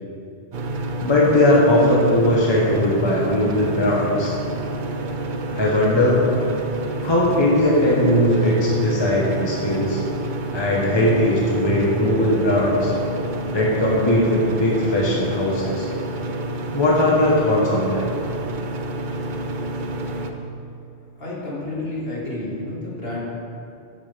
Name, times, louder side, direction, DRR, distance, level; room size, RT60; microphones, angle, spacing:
sound 1, 0.5-20.3, right 2 dB, 50° right, 0.8 m, -29 dB
voice 1, 1.0-4.3 5.5-6.2 7.0-10.0 10.5-12.9 13.5-15.9 16.7-18.1, left 1 dB, 25° left, -4 dB, 1.3 m, -19 dB
voice 2, 21.2-23.2, left 2 dB, 60° left, -6 dB, 2.5 m, -30 dB
11.0 x 9.7 x 3.5 m, 2.7 s
omnidirectional pair, 1.1 m